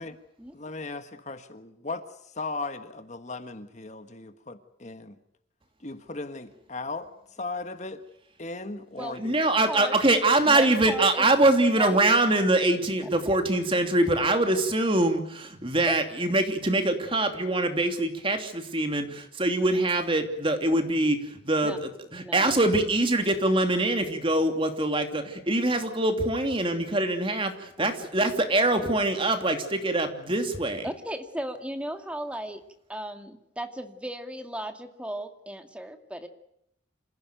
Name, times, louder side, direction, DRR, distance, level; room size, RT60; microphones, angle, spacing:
voice 1, 0.5-5.1 5.8-7.1 7.4-8.0 8.4-9.4, left 3 dB, 35° left, 9 dB, 1.5 m, -37 dB
voice 2, 9.2-30.9, right 2 dB, 25° right, 6 dB, 2.9 m, -24 dB
voice 3, 9.7-11.3 11.8-12.0 15.9-16.0 21.6-21.8 22.2-22.5 27.8-27.9 30.8-32.6 32.9-36.3, right 1 dB, 5° right, 6 dB, 2.3 m, -36 dB
27.5 x 16.5 x 9.3 m, 0.77 s
head